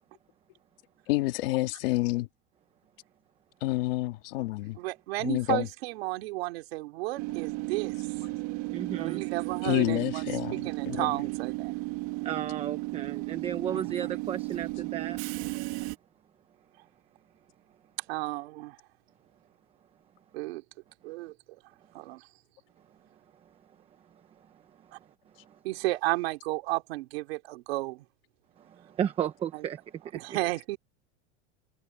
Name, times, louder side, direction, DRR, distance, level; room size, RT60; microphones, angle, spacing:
voice 1, 1.1-2.3 3.6-4.8 5.2-5.7 9.6-11.1, left 19 dB, 55° left, 2.1 m, -29 dB
voice 2, 4.8-8.0 8.9-10.2 10.5-11.7 13.7-14.1 18.1-18.8 20.3-20.6 21.0-21.3 21.9-22.3 25.6-28.0 30.1-30.8, right 20 dB, 60° right, 2.9 m, -33 dB
Train / Subway metro underground, 7.2-16.0, right 24 dB, 45° right, 1.9 m, -34 dB
voice 3, 8.7-9.2 12.2-15.2 23.4-23.6 24.1-25.1 25.3-25.6 28.6-30.4, right 9 dB, 15° right, 0.9 m, -35 dB
supercardioid pair, 180°, 34 cm